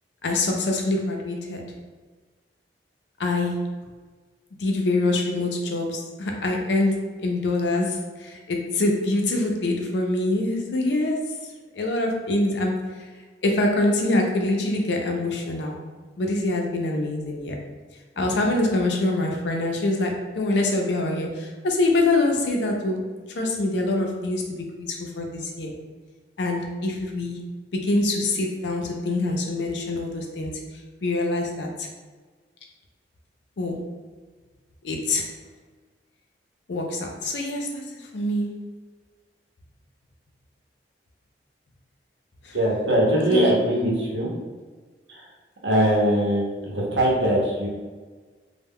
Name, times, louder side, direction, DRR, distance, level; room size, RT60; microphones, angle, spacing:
voice 1, 0.2-1.7 3.2-3.7 4.6-11.3 11.8-12.9 13.4-15.8 16.2-17.6 18.2-23.0 23.3-25.7 26.4-27.4 27.7-30.6 31.0-31.9 33.6-33.8 34.8-35.3 36.7-37.8 38.1-38.6 42.4-42.6 43.3-43.5, left 2 dB, 80° left, 1 dB, 0.5 m, -25 dB
voice 2, 42.5-44.3 45.1-45.3 45.6-47.7, right 1 dB, 85° right, -3 dB, 0.7 m, -21 dB
2.1 x 2.1 x 3.5 m, 1.4 s
head